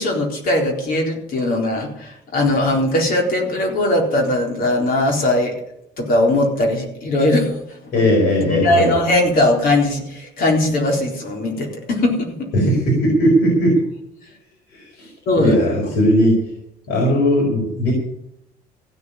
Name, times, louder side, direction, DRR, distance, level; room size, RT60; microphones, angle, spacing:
voice 1, 0.0-5.5 6.0-7.8 8.4-12.5 15.3-15.5, left 1 dB, 60° left, 1 dB, 4.0 m, -19 dB
voice 2, 7.9-8.9 12.5-13.8 14.7-15.1 15.4-16.4 16.9-17.9, equal, 85° left, -1 dB, 4.7 m, -17 dB
15.5 x 6.8 x 9.8 m, 0.79 s
cardioid pair, 110°, 17 cm